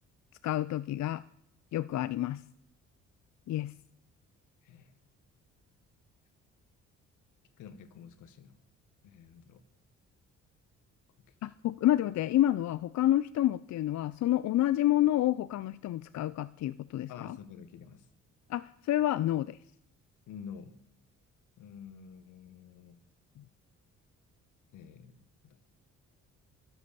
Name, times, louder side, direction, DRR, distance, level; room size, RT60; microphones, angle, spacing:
voice 1, 0.4-1.2 1.7-2.4 3.5-3.7 11.4-17.4 18.5-19.6, left 13 dB, 65° left, 16 dB, 0.5 m, -28 dB
voice 2, 7.6-8.6 9.0-9.6 11.2-11.3 17.1-18.1 20.3-20.7 21.6-23.0 24.7-25.6, left 7 dB, 85° left, 12 dB, 1.6 m, -49 dB
23.0 x 8.1 x 7.0 m, 0.79 s
cardioid pair, 90°, 30 cm